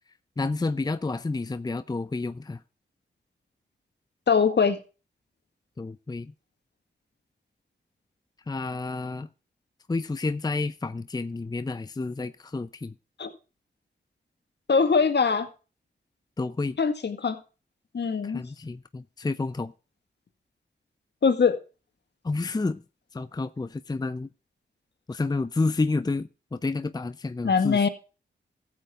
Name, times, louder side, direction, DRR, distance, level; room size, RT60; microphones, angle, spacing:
voice 1, 0.4-2.6 5.8-6.3 8.5-9.3 9.9-12.9 16.4-16.8 18.2-19.7 22.2-22.8 23.1-24.3 25.1-27.9, left 3 dB, 20° left, 0.6 m, -30 dB
voice 2, 4.3-4.8 13.2-13.3 14.7-15.5 16.8-17.4 17.9-18.4 21.2-21.6 27.4-27.9, left 5 dB, 65° left, 1.8 m, -22 dB
14.5 x 8.1 x 3.6 m
cardioid pair, 60°, 19 cm